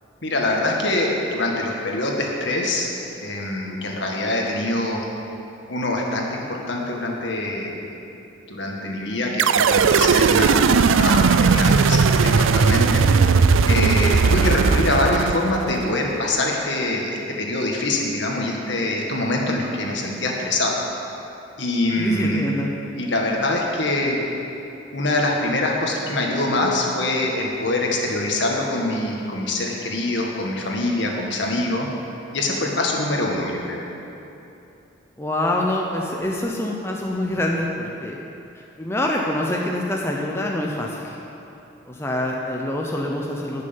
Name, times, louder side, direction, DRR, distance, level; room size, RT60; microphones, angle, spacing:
voice 1, 0.2-2.9 3.2-5.0 5.7-7.8 8.5-13.1 13.7-20.8 21.6-22.4 23.0-24.2 24.9-31.9 32.3-33.8, left 2 dB, 65° left, -1 dB, 1.8 m, -24 dB
sound 1, 9.4-15.9, right 5 dB, 80° right, 0.4 m, -17 dB
voice 2, 14.2-14.5 22.0-22.7 35.2-38.2 38.5-41.2 41.8-43.6, left 1 dB, 15° left, -1 dB, 0.8 m, -26 dB
12.5 x 6.7 x 8.9 m, 2.9 s
head